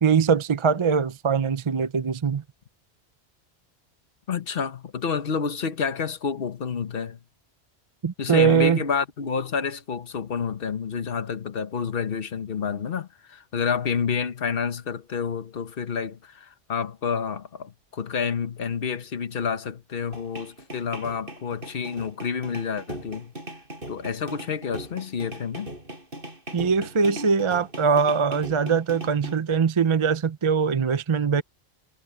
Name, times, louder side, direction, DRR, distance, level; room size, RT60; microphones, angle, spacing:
voice 1, 0.0-2.4 8.0-8.8 26.5-31.4, right 6 dB, 35° right, 0.5 m, -22 dB
voice 2, 4.3-7.2 8.2-23.3 23.9-25.7, left 6 dB, 55° left, 1.3 m, -29 dB
sound 1, 20.1-29.4, right 1 dB, 50° right, 7.0 m, -39 dB
omnidirectional pair, 1.1 m